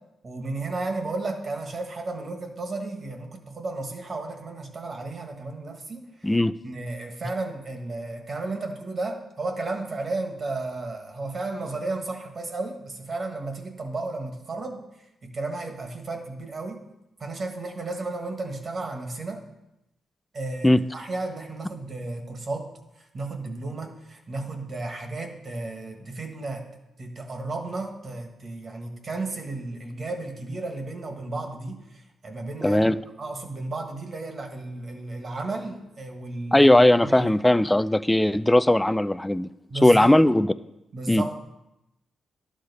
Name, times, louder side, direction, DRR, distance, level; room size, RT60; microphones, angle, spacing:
voice 1, 0.2-6.0 6.6-14.8 15.2-16.8 17.2-19.4 20.3-22.7 23.0-26.6 27.0-32.8 33.2-36.7 37.0-37.3 39.7-40.1 40.9-41.4, right 2 dB, 45° right, 4 dB, 1.5 m, -33 dB
voice 2, 6.2-6.5 20.6-20.8 32.6-33.0 36.5-39.5 39.8-40.5 41.1-41.2, left 1 dB, 10° left, 15 dB, 0.3 m, -18 dB
11.5 x 6.5 x 4.1 m, 0.90 s
cardioid pair, 85°, 0 cm